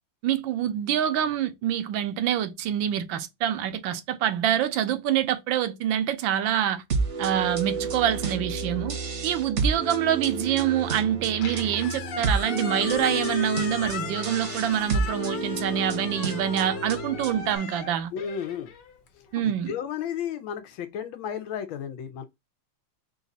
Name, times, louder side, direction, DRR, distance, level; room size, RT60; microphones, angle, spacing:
voice 1, 0.2-6.8 7.2-9.0 9.2-18.1 19.3-19.7, right 10 dB, 80° right, 1.4 m, -26 dB
sound 1, 6.9-17.6, right 3 dB, 50° right, 1.0 m, -30 dB
Squeak, 11.2-19.4, left 5 dB, 65° left, 1.6 m, -39 dB
voice 2, 18.1-18.7 19.3-22.2, left 8 dB, 85° left, 1.6 m, -33 dB
4.0 x 2.6 x 3.9 m
omnidirectional pair, 2.1 m